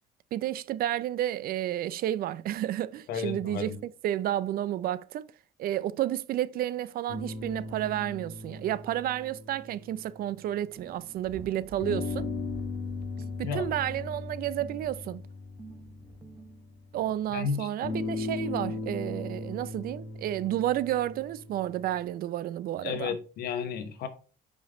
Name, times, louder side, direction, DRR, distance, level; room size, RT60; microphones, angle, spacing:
voice 1, 0.3-5.3 5.6-12.3 13.4-15.2 16.9-23.2, right 12 dB, 60° right, 0.4 m, -31 dB
voice 2, 3.1-3.8 13.4-13.7 17.3-17.7 22.8-24.1, left 6 dB, 70° left, 1.1 m, -32 dB
sound 1, 7.1-11.0 11.8-16.9 17.8-22.0, left 3 dB, 90° left, 1.5 m, -38 dB
sound 2, 10.8-17.0, right 4 dB, 20° right, 0.7 m, -50 dB
5.3 x 5.3 x 3.8 m
cardioid pair, 110°, 17 cm